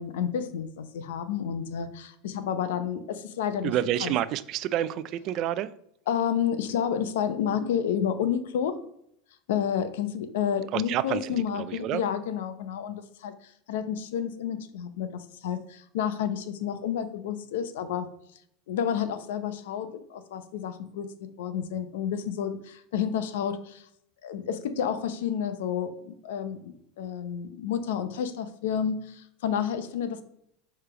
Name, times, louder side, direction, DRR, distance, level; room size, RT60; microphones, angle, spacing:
voice 1, 0.0-3.7 4.0-4.1 6.1-8.8 9.5-18.1 18.7-23.8 24.2-30.2, left 8 dB, 80° left, 11 dB, 0.7 m, -30 dB
voice 2, 3.6-5.7 10.7-12.0, right 12 dB, 50° right, 16 dB, 0.4 m, -29 dB
6.6 x 3.3 x 4.9 m, 0.72 s
supercardioid pair, 110°, 0 cm